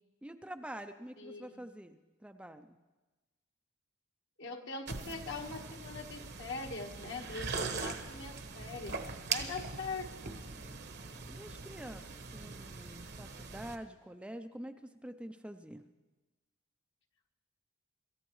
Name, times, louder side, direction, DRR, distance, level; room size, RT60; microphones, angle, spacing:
voice 1, 0.2-2.8 11.3-15.8, right 1 dB, 5° right, 7 dB, 0.4 m, -47 dB
voice 2, 1.2-1.6 4.4-9.0 9.3-10.3, left 4 dB, 65° left, 2 dB, 1.4 m, -42 dB
sound 1, 4.9-13.8, right 5 dB, 55° right, 1.0 m, -41 dB
26.5 x 14.0 x 3.1 m, 1.2 s
head